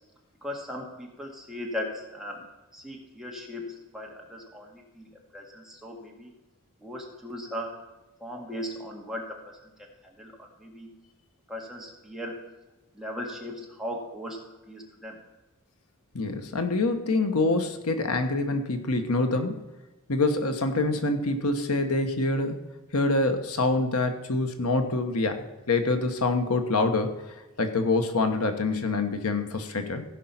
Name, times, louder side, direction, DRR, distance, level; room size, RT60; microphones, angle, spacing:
voice 1, 0.4-2.4 2.7-6.3 6.8-7.7 8.2-9.9 10.2-10.9 11.5-12.5 12.9-14.4 14.7-15.2, left 1 dB, ahead, -1 dB, 1.8 m, -38 dB
voice 2, 16.1-19.7 20.1-22.6 22.9-27.2 27.6-30.0, left 2 dB, 85° left, 7 dB, 1.1 m, -26 dB
16.0 x 5.4 x 5.8 m, 1.1 s
head